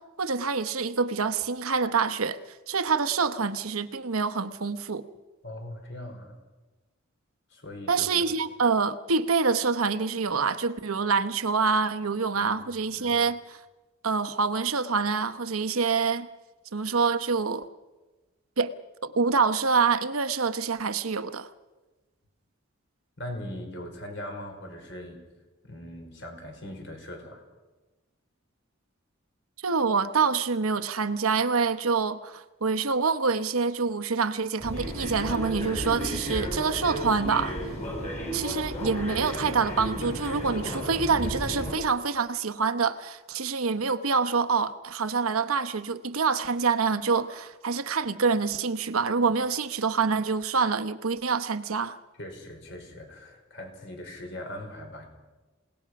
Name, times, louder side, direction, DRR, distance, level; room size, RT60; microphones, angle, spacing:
voice 1, 0.2-2.4 2.7-5.1 7.9-13.6 14.0-16.3 16.7-17.6 18.6-18.7 19.0-21.5 29.6-37.6 38.3-52.0, right 5 dB, 90° right, 1.0 m, -26 dB
voice 2, 5.4-6.3 7.5-8.2 12.3-12.5 13.0-13.1 23.2-25.3 25.7-27.4 52.2-55.1, left 1 dB, 55° left, 4.8 m, -40 dB
sound 1, 34.6-41.7, equal, 30° left, 6.0 m, -33 dB
27.5 x 18.5 x 6.0 m
head